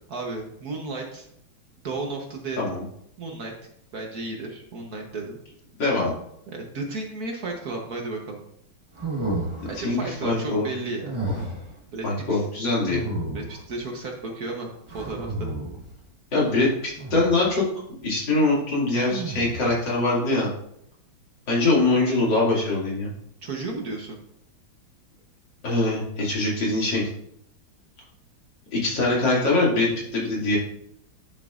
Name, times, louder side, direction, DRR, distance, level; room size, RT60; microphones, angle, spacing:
voice 1, 0.1-1.3 1.8-2.6 3.2-3.5 3.9-5.4 6.5-8.4 9.6-11.2 11.9-12.4 13.3-15.5 23.4-24.2 30.4-30.6, right 3 dB, 55° right, 1 dB, 1.4 m, -33 dB
voice 2, 5.8-6.1 9.7-10.7 12.0-13.0 16.3-17.7 18.0-20.5 21.5-23.1 25.6-27.1 28.7-30.6, left 2 dB, 60° left, -5 dB, 3.1 m, -23 dB
sound 1, 9.0-9.9 11.0-11.7 12.9-13.7 14.9-15.9 17.0-17.5 19.1-19.8, right 2 dB, 20° right, 1.0 m, -31 dB
10.0 x 7.2 x 2.5 m, 0.75 s
omnidirectional pair, 2.2 m